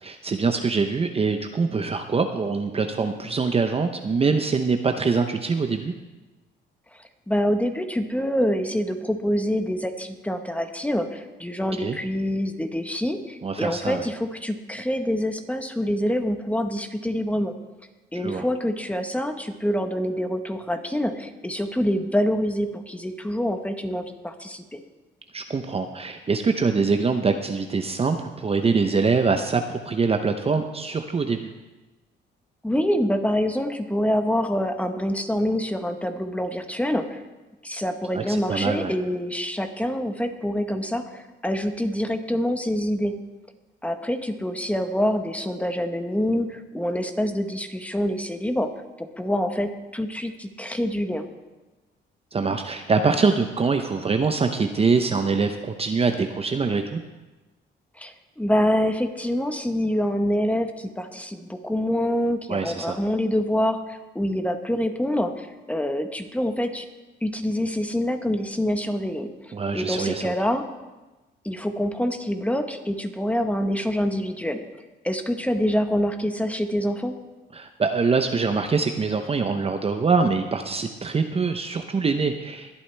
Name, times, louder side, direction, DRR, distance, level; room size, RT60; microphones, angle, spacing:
voice 1, 0.0-5.9 11.8-12.0 13.4-14.1 18.2-18.4 25.3-31.5 38.1-38.9 52.3-57.0 62.5-63.0 69.5-70.3 77.5-82.8, right 4 dB, 30° right, 6 dB, 0.8 m, -24 dB
voice 2, 6.9-17.5 18.1-24.8 32.6-37.2 37.6-43.1 43.8-48.7 49.0-51.2 58.0-66.9 67.2-70.6 71.4-74.6 75.0-77.1, equal, 5° left, 6 dB, 1.2 m, -26 dB
22.0 x 8.5 x 3.4 m, 1.1 s
cardioid pair, 90°, 20 cm